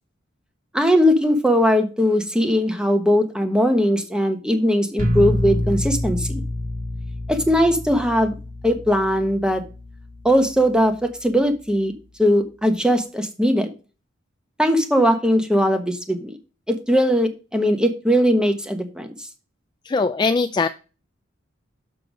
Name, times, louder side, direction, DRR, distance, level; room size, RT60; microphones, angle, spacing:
voice 1, 0.7-6.4 7.3-8.3 8.6-9.6 10.2-11.9 12.2-13.7 14.6-16.4 16.7-19.1, equal, 5° right, 6 dB, 1.1 m, -19 dB
sound 1, 5.0-10.8, left 1 dB, 40° right, 2.8 m, -27 dB
voice 2, 19.9-20.7, left 4 dB, 20° left, 9 dB, 0.3 m, -20 dB
6.7 x 5.9 x 5.0 m, 0.33 s
head